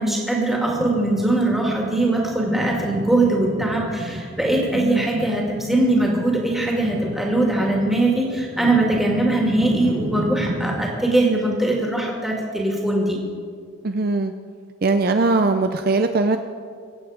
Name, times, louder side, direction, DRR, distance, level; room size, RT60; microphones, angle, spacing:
voice 1, 0.0-13.2, right 2 dB, ahead, -2 dB, 2.4 m, -21 dB
sound 1, 0.7-10.9, right 1 dB, 60° right, 1.4 m, -33 dB
voice 2, 4.7-5.1 13.8-14.3 14.8-16.4, right 3 dB, 45° right, 7 dB, 0.5 m, -20 dB
24.0 x 8.6 x 5.1 m, 2.1 s
head